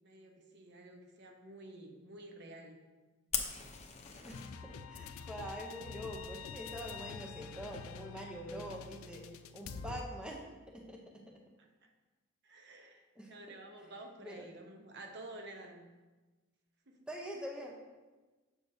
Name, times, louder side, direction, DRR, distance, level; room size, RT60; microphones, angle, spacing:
voice 1, 0.0-2.8 11.6-11.9 12.4-15.9 16.9-17.0, right 2 dB, 55° right, 3 dB, 0.8 m, -51 dB
Fire, 3.3-4.5, left 7 dB, 35° left, 0.6 m, -38 dB
sound 1, 4.3-10.0, left 5 dB, 90° left, 0.4 m, -47 dB
voice 2, 4.3-9.2 9.5-10.4 10.7-11.2 13.2-13.3 14.2-14.5 17.1-17.8, equal, 5° right, 0 dB, 0.7 m, -44 dB
7.1 x 6.6 x 2.7 m, 1.2 s
head